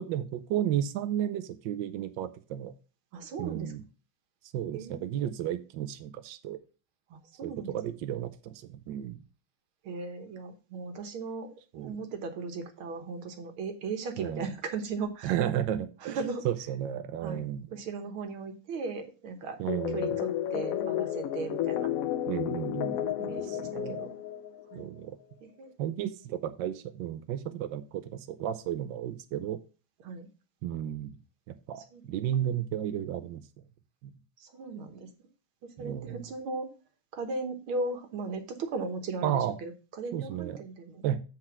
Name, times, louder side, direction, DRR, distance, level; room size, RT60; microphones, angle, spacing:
voice 1, 0.0-2.7 3.4-3.8 4.5-6.6 7.4-9.2 11.7-12.0 14.2-14.5 15.2-16.2 16.4-17.7 19.6-20.2 22.3-24.0 24.7-25.2 25.8-29.6 30.6-31.2 31.5-33.4 34.0-34.1 35.8-36.2 39.2-39.6 40.1-40.6 41.0-41.2, right 11 dB, 75° right, 10 dB, 1.3 m, -33 dB
voice 2, 3.1-3.7 4.7-5.0 7.1-7.8 9.8-11.5 11.7-15.3 16.0-16.4 17.2-19.6 19.9-21.9 23.2-24.2 24.7-24.8 25.4-25.7 30.0-30.3 31.8-32.0 34.4-35.1 35.6-36.7 37.1-41.0, right 4 dB, 90° right, 7 dB, 2.0 m, -37 dB
sound 1, 19.7-24.8, left 11 dB, 85° left, 0.7 m, -32 dB
7.8 x 4.5 x 5.9 m, 0.34 s
omnidirectional pair, 2.2 m